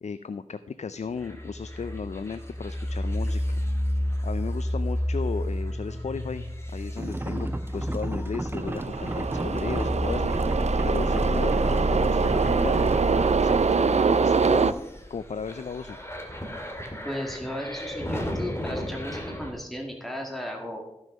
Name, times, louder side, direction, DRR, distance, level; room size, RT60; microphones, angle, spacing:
voice 1, 0.0-3.4 4.2-6.4 6.7-10.3 10.8-14.7 15.1-16.0, left 5 dB, 85° left, 12 dB, 0.4 m, -35 dB
sound 1, 1.2-19.5, left 1 dB, 20° left, 2.3 m, -31 dB
sound 2, 7.0-13.3, right 2 dB, 20° right, 0.4 m, -34 dB
sound 3, 8.6-14.7, right 5 dB, 80° right, 0.5 m, -24 dB
voice 2, 17.0-20.8, equal, ahead, 1 dB, 2.0 m, -35 dB
14.0 x 6.4 x 5.3 m, 0.87 s
wide cardioid pair, 55°, 11 cm